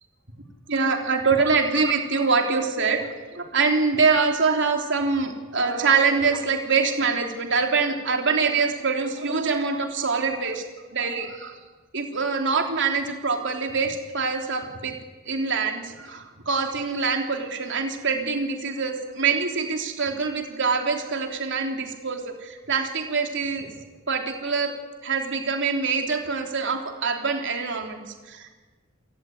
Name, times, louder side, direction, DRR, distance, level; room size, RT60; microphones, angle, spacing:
voice 1, 0.7-10.7 10.9-11.6 11.9-14.9 15.3-23.8 24.1-24.7 25.0-28.5, right 4 dB, 60° right, 4 dB, 3.5 m, -24 dB
28.5 x 17.5 x 9.6 m, 1.3 s
head